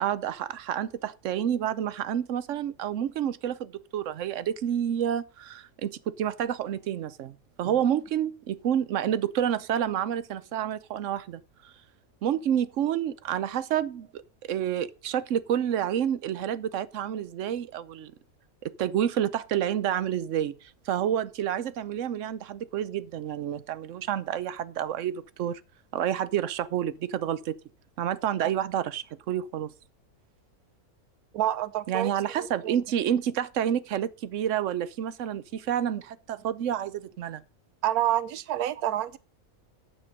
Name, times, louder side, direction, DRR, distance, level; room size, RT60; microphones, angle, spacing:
voice 1, 0.0-11.7 12.2-18.1 18.6-25.6 25.9-27.6 28.0-29.7 31.9-37.4, right 10 dB, 65° right, 1.0 m, -29 dB
voice 2, 31.3-32.1 32.4-32.7 37.8-39.2, right 12 dB, 85° right, 1.2 m, -28 dB
9.5 x 7.6 x 5.3 m
omnidirectional pair, 1.5 m